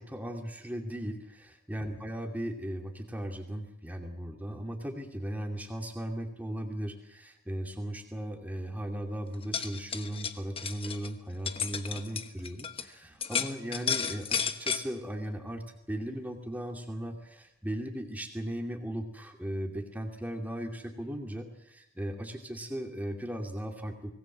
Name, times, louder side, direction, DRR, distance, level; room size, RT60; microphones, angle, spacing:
voice 1, 0.0-24.1, right 1 dB, 5° right, 3 dB, 2.6 m, -37 dB
sound 1, 9.3-12.9 13.2-14.8, left 7 dB, 25° left, 1.2 m, -33 dB
25.0 x 19.0 x 7.5 m, 0.83 s
head